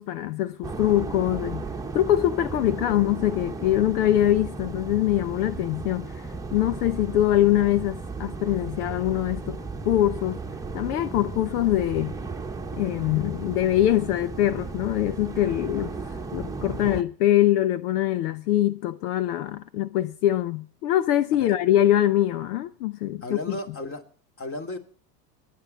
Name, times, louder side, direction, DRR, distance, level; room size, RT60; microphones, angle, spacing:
voice 1, 0.0-1.7 1.9-10.4 10.7-12.2 12.7-23.6, left 13 dB, 70° left, 1.0 m, -23 dB
sound 1, 0.6-17.0, right 3 dB, 5° right, 1.4 m, -35 dB
voice 2, 23.2-24.0 24.4-24.8, left 2 dB, 25° left, 3.1 m, -34 dB
23.0 x 11.5 x 4.3 m
hypercardioid pair, 100°, 48 cm